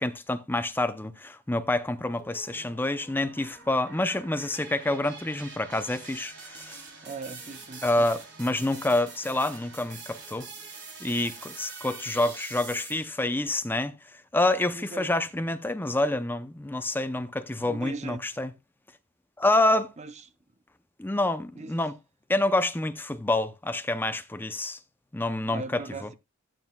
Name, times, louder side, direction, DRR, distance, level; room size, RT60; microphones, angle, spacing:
voice 1, 0.0-6.8 7.8-10.5 11.0-18.5 19.4-19.9 21.0-21.9 22.3-24.8 25.1-25.8, left 2 dB, 10° left, 0.6 m, -27 dB
sound 1, 2.2-13.3, right 4 dB, 60° right, 3.2 m, -45 dB
voice 2, 7.0-8.1 14.7-15.1 17.6-18.3 20.0-20.1 21.6-21.9 25.5-26.1, right 3 dB, 35° right, 0.6 m, -39 dB
14.0 x 9.0 x 2.3 m
head